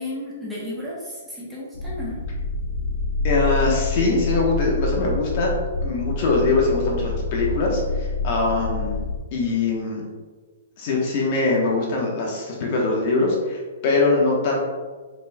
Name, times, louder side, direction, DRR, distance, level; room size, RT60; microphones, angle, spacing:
voice 1, 0.0-2.2, left 1 dB, 5° right, -7 dB, 0.9 m, -33 dB
sound 1, 1.7-9.2, left 3 dB, 80° left, 0.8 m, -27 dB
voice 2, 3.2-5.5 5.8-10.0 10.8-14.6, left 3 dB, 45° left, -2 dB, 1.0 m, -22 dB
4.2 x 4.0 x 2.2 m, 1.4 s
hypercardioid pair, 150°, 0 cm